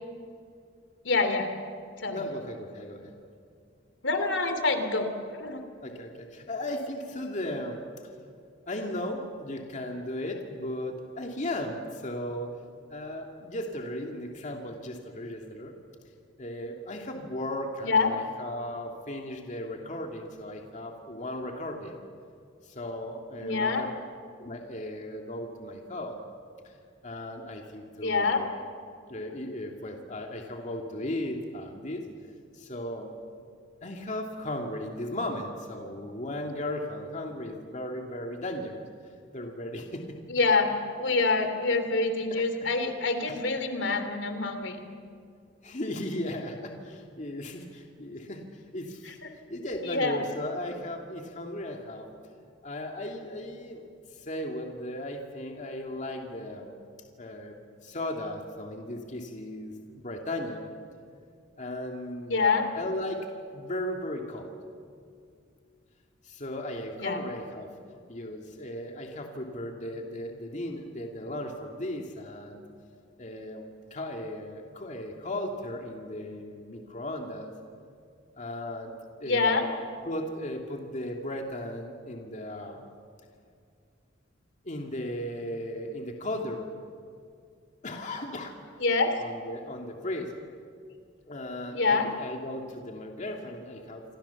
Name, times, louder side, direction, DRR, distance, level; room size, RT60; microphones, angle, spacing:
voice 1, 1.0-1.5 2.0-2.2 4.0-5.6 17.8-18.1 23.4-23.8 28.0-28.4 40.3-44.8 49.0-49.3 49.8-50.2 62.3-62.6 67.0-67.2 79.2-79.7 88.8-89.1 91.7-92.1, left 3 dB, 70° left, 7 dB, 3.0 m, -26 dB
voice 2, 2.1-3.1 5.8-7.8 8.7-12.5 12.9-15.7 16.4-22.0 22.6-23.9 24.4-26.2 26.6-26.7 27.0-28.5 29.1-32.0 32.5-33.1 33.8-38.8 39.3-40.1 42.3-42.4 45.6-49.2 49.5-52.1 52.6-53.8 54.1-56.7 57.2-60.6 61.6-63.3 63.5-64.5 66.2-67.7 68.1-72.6 73.2-73.6 73.9-77.5 78.4-78.9 79.2-82.8 84.6-86.6 87.8-88.6 89.2-90.3 91.3-94.0, left 1 dB, 40° left, 2 dB, 2.4 m, -36 dB
27.5 x 26.0 x 7.1 m, 2.3 s
head